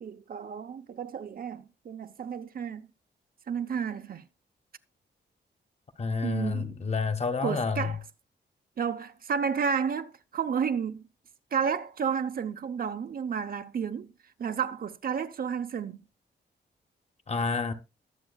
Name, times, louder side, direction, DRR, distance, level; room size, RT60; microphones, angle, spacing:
voice 1, 0.0-2.9 3.5-4.3 6.2-6.8 7.4-8.0 8.8-11.1 11.5-14.1 14.4-16.0, right 6 dB, 55° right, 0.8 m, -31 dB
voice 2, 6.0-7.9 17.3-17.7, left 4 dB, 35° left, 1.1 m, -29 dB
21.0 x 7.5 x 2.4 m
wide cardioid pair, 155°, 18 cm